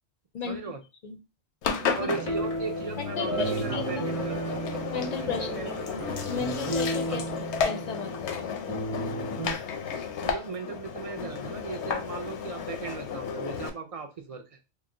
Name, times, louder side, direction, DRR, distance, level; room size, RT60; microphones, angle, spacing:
voice 1, 0.4-0.8 2.0-4.4 5.4-5.8 7.1-7.3 10.2-14.6, right 4 dB, 55° right, 4 dB, 0.4 m, -37 dB
Engine, 1.6-13.7, left 6 dB, 80° left, 0.9 m, -33 dB
voice 2, 1.7-2.1 3.0-4.0 4.9-5.8 6.3-7.2 7.6-8.8, left 5 dB, 50° left, 6 dB, 0.5 m, -35 dB
sound 1, 1.8-6.8, right 8 dB, 70° right, 0.8 m, -43 dB
sound 2, 2.1-9.5, right 2 dB, 30° right, 0.8 m, -34 dB
3.1 x 2.0 x 3.6 m, 0.26 s
omnidirectional pair, 1.2 m